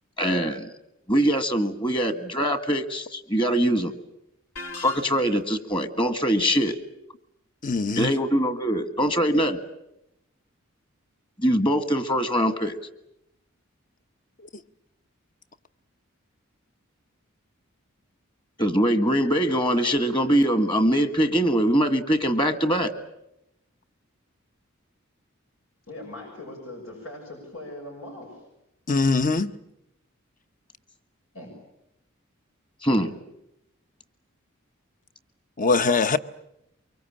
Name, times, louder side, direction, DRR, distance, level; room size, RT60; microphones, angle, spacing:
voice 1, 0.2-0.7 1.1-3.9 4.7-6.8 7.9-9.6 11.4-12.8 18.6-22.9 32.8-33.1, equal, 25° left, 1.7 m, -23 dB
sound 1, 4.6-5.6, left 3 dB, 75° left, 2.4 m, -39 dB
voice 2, 7.6-8.1 28.9-29.5 35.6-36.2, left 4 dB, 40° left, 0.9 m, -22 dB
voice 3, 25.9-28.4 31.3-31.5, left 1 dB, 90° left, 6.6 m, -40 dB
24.5 x 23.5 x 8.8 m
head